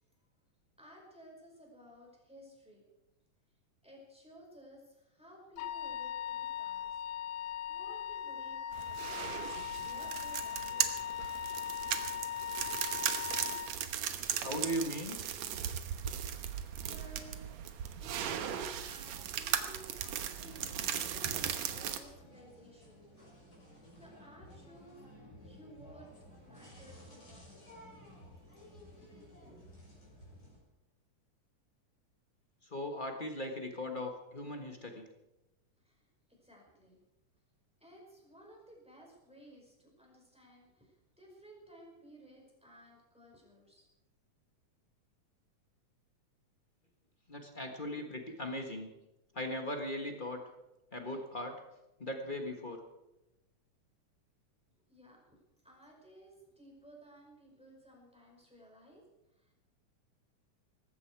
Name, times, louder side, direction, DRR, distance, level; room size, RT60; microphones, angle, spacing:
voice 1, 0.8-2.8 3.8-7.0 7.7-9.2 9.8-11.0 11.9-12.1 16.8-17.5 18.0-20.3 20.7-23.1 24.0-25.0 25.4-26.1 26.4-27.6 28.3-28.6 29.0-29.6 35.8-37.0 37.8-43.9 54.9-59.0 59.3-59.5, right 1 dB, ahead, -1 dB, 5.3 m, -56 dB
Wind instrument woodwind instrument, 5.6-13.8, left 9 dB, 75° left, 1.9 m, -39 dB
sound 1, 8.7-22.0, right 9 dB, 65° right, 2.2 m, -37 dB
voice 2, 14.4-15.2 32.6-35.1 47.3-48.9 49.3-50.4 50.9-51.6 52.0-52.8, left 1 dB, 50° left, 3 dB, 0.5 m, -38 dB
sound 2, 20.3-30.6, equal, 20° left, 6.4 m, -55 dB
19.5 x 15.5 x 4.7 m, 0.96 s
omnidirectional pair, 3.7 m